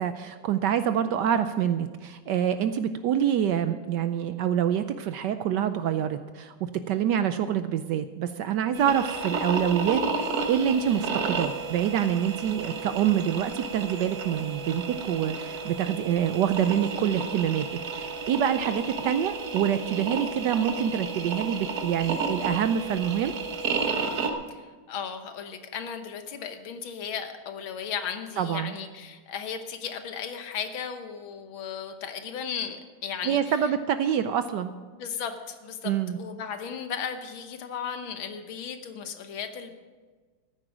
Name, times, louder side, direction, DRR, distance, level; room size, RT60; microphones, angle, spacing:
voice 1, 0.0-17.7 17.9-23.3 28.4-28.7 33.2-34.7 35.8-36.2, right 9 dB, 75° right, 10 dB, 1.0 m, -26 dB
sound 1, 8.7-24.3, right 4 dB, 55° right, 1.5 m, -32 dB
voice 2, 24.5-33.6 34.9-39.7, left 7 dB, 75° left, 8 dB, 1.8 m, -36 dB
14.0 x 9.9 x 6.2 m, 1.4 s
omnidirectional pair, 2.2 m